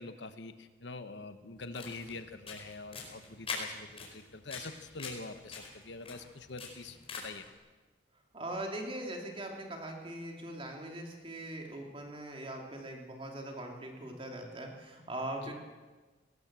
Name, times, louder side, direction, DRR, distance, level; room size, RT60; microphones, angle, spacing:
voice 1, 0.0-7.4 15.4-15.5, left 3 dB, 70° left, 9 dB, 1.2 m, -45 dB
sound 1, 1.6-7.5, left 4 dB, 30° left, 4.7 m, -44 dB
voice 2, 8.3-15.5, right 1 dB, 30° right, 1 dB, 3.2 m, -41 dB
19.0 x 18.5 x 7.6 m, 1.3 s
head